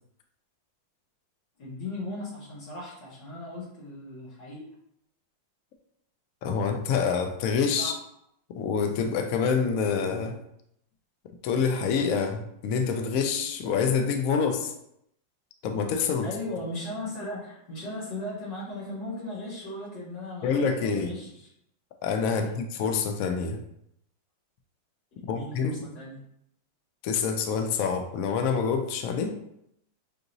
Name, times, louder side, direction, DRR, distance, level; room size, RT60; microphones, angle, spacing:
voice 1, 1.6-4.6 7.8-7.9 16.2-21.5 22.3-22.6 25.2-26.2, left 1 dB, 65° left, -6 dB, 2.1 m, -37 dB
voice 2, 6.4-7.9 8.5-10.4 11.4-14.7 15.6-16.3 20.4-21.1 22.0-23.6 25.3-25.8 27.0-29.4, left 6 dB, 85° left, 5 dB, 0.7 m, -26 dB
6.3 x 2.9 x 2.6 m, 0.75 s
omnidirectional pair, 2.1 m